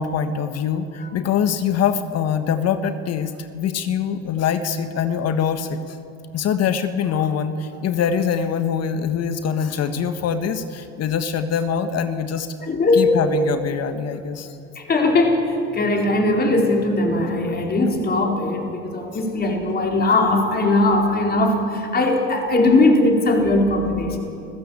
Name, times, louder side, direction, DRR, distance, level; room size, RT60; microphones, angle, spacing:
voice 1, 0.0-6.0 6.3-12.5 12.9-14.5, left 7 dB, 40° left, 9 dB, 1.5 m, -23 dB
voice 2, 12.6-13.3 14.8-24.2, left 2 dB, 25° left, 1 dB, 4.5 m, -19 dB
28.5 x 15.0 x 8.6 m, 2.6 s
hypercardioid pair, 95°, 38 cm